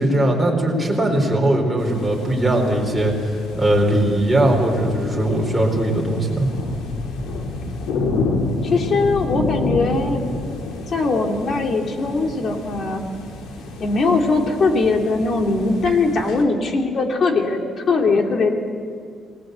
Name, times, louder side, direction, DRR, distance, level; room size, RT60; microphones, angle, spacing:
voice 1, 0.0-3.1 3.5-6.5, right 1 dB, ahead, -2 dB, 4.4 m, -19 dB
sound 1, 1.8-16.4, left 2 dB, 80° left, 3.4 m, -29 dB
voice 2, 8.6-10.2 10.9-13.0 13.8-18.5, left 3 dB, 40° left, 3 dB, 2.7 m, -20 dB
28.0 x 19.5 x 8.2 m, 2.2 s
cardioid pair, 165°, 0 cm